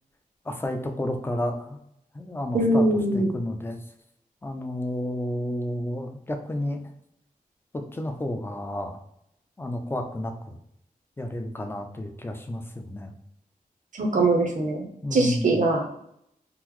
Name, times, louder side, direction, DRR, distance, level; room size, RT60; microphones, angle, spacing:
voice 1, 0.5-1.8 2.1-2.9 3.1-3.8 4.4-6.9 7.7-9.0 9.6-10.6 11.2-13.1 15.0-15.6, left 1 dB, 15° left, 5 dB, 0.4 m, -31 dB
voice 2, 2.5-3.3 13.9-14.8 15.1-15.9, right 2 dB, 60° right, 2 dB, 0.6 m, -22 dB
3.7 x 2.0 x 3.0 m, 0.76 s
wide cardioid pair, 110°, 15 cm